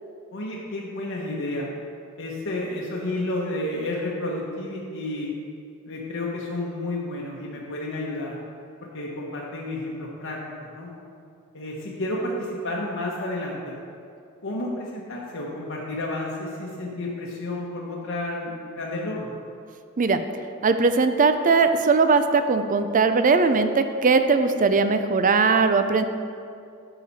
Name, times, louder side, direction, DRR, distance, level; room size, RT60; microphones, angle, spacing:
voice 1, 0.3-1.7 2.2-5.3 5.8-8.4 8.8-10.9 11.5-13.7 14.4-19.3, left 1 dB, 60° left, -3 dB, 1.0 m, -31 dB
voice 2, 20.6-26.0, right 4 dB, 35° right, 9 dB, 0.5 m, -20 dB
11.0 x 6.8 x 4.2 m, 2.5 s
head